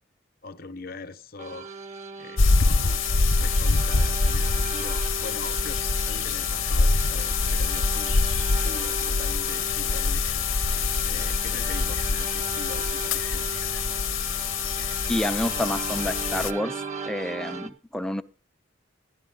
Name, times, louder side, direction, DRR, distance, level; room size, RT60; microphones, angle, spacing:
voice 1, 0.4-1.7 2.2-3.0 3.3-8.2 8.6-10.5 11.0-13.5, left 3 dB, 45° left, 0.8 m, -42 dB
sound 1, 1.4-17.7, right 4 dB, 35° right, 0.8 m, -37 dB
sound 2, 2.4-16.5, left 4 dB, 80° left, 0.8 m, -25 dB
voice 2, 15.1-18.2, left 1 dB, 5° left, 0.5 m, -29 dB
12.5 x 11.5 x 3.9 m
head